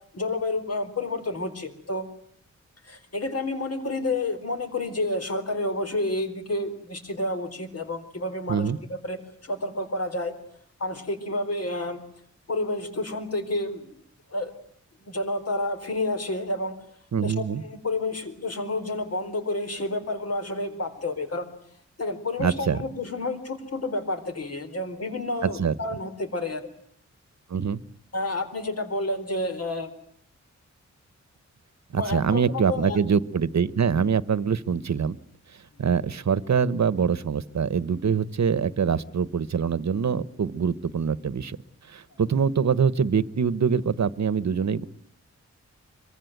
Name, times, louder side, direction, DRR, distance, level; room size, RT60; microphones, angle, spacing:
voice 1, 0.1-2.1 2.9-10.3 10.8-12.0 12.5-14.0 14.3-14.5 15.0-16.7 17.2-21.5 22.0-26.7 28.1-29.9 31.9-33.0, left 2 dB, 55° left, 8 dB, 4.4 m, -30 dB
voice 2, 17.1-17.6 22.4-22.8 25.4-25.8 27.5-27.8 31.9-35.2 35.5-41.6 41.9-44.9, right 6 dB, 65° right, 17 dB, 1.1 m, -24 dB
25.0 x 23.0 x 9.3 m, 0.64 s
wide cardioid pair, 135°, 30 cm